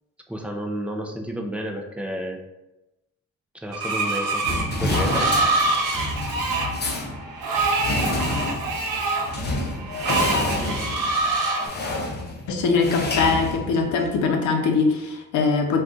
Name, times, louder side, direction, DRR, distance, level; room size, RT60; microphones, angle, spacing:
voice 1, 0.3-2.4 3.6-4.4 4.8-5.4, equal, 5° right, 2 dB, 0.4 m, -31 dB
Screech, 3.7-11.7, right 2 dB, 80° right, 0.7 m, -25 dB
sound 1, 4.4-14.2, left 2 dB, 35° left, 0.7 m, -29 dB
voice 2, 12.5-15.8, left 4 dB, 75° left, 3 dB, 0.6 m, -22 dB
2.6 x 2.3 x 3.6 m, 0.98 s
cardioid pair, 90°, 30 cm